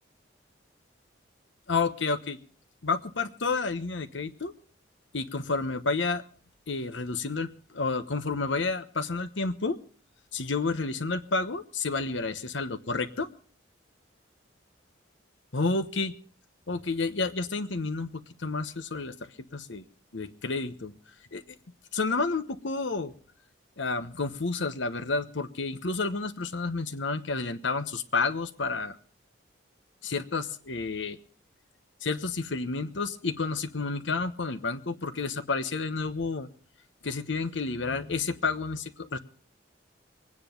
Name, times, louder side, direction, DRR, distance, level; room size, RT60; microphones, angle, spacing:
voice 1, 1.7-2.4 2.8-4.5 5.1-6.2 6.7-9.8 10.3-13.3 15.5-16.1 16.7-19.8 20.1-20.9 21.3-21.4 21.9-23.1 23.8-29.0 30.0-31.2 32.0-36.5 37.0-39.2, left 3 dB, 75° left, 11 dB, 1.1 m, -30 dB
23.0 x 9.7 x 5.2 m, 0.43 s
head